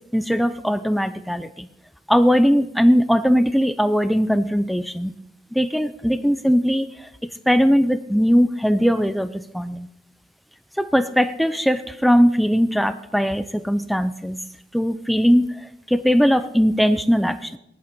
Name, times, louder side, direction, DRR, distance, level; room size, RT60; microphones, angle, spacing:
voice 1, 0.1-1.7 2.1-5.1 5.5-6.9 7.5-9.9 10.8-14.4 14.7-15.5 15.9-17.6, equal, ahead, 12 dB, 0.6 m, -19 dB
19.0 x 11.5 x 5.2 m, 0.86 s
head